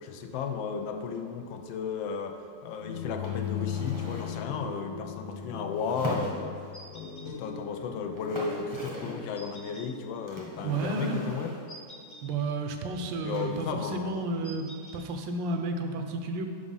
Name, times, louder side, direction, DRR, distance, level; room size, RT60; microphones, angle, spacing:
voice 1, 0.0-11.6 13.2-14.5, left 5 dB, 85° left, 5 dB, 1.3 m, -34 dB
sound 1, 2.8-12.7, left 8 dB, 65° left, 0.8 m, -40 dB
sound 2, 3.2-4.5 5.7-6.8 7.8-7.9 8.1-9.3 10.3-11.8 13.3-14.0, right 1 dB, 20° right, 0.6 m, -40 dB
sound 3, 6.7-7.3 9.4-9.9 11.7-12.2 14.4-15.0, right 1 dB, 35° left, 0.7 m, -47 dB
voice 2, 10.6-11.3 12.2-14.7 14.9-16.5, right 3 dB, 80° right, 5 dB, 1.3 m, -32 dB
5.2 x 4.9 x 5.4 m, 2.2 s
omnidirectional pair, 2.0 m